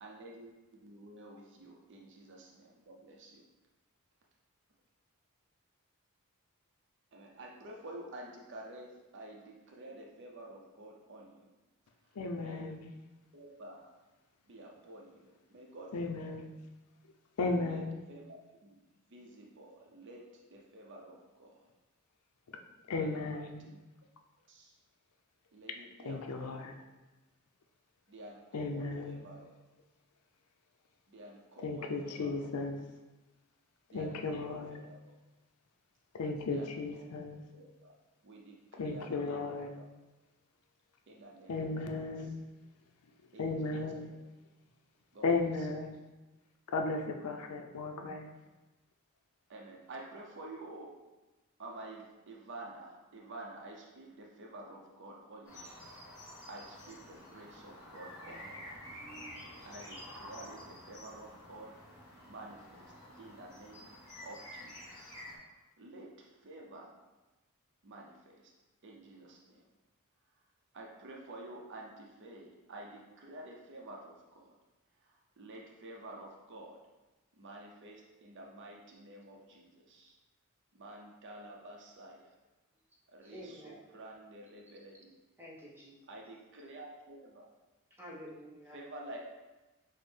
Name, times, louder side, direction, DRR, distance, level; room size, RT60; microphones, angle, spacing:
voice 1, 0.0-3.4 7.1-11.5 12.4-12.8 13.3-13.9 14.5-16.3 17.6-17.8 18.1-18.7 19.1-21.7 23.0-23.8 24.5-24.8 25.5-26.9 28.1-29.4 31.1-32.5 33.9-35.0 36.5-37.1 37.5-37.9 38.2-39.5 41.1-42.3 43.3-44.2 45.1-45.7 49.5-51.0 51.6-58.9 59.6-61.7 62.3-64.0 64.2-67.0 67.8-68.5 68.8-69.6 70.7-74.5 75.0-76.8 77.4-80.2 80.7-82.3 83.1-85.1 86.1-87.5 88.7-89.2, right 1 dB, 55° right, -1 dB, 0.6 m, -50 dB
voice 2, 12.2-12.9 15.9-16.5 17.4-18.0 22.9-23.6 26.0-26.8 28.5-29.3 31.6-32.8 33.9-34.8 36.1-37.4 38.8-39.7 41.5-42.4 43.4-44.1 45.2-46.0 46.7-48.3, left 3 dB, 90° left, 4 dB, 0.5 m, -35 dB
sound 1, 55.4-65.4, left 1 dB, 20° left, 1.3 m, -50 dB
voice 3, 83.2-83.8 85.4-86.0 88.0-88.8, equal, 10° right, -4 dB, 0.6 m, -49 dB
6.1 x 2.0 x 3.2 m, 1.1 s
head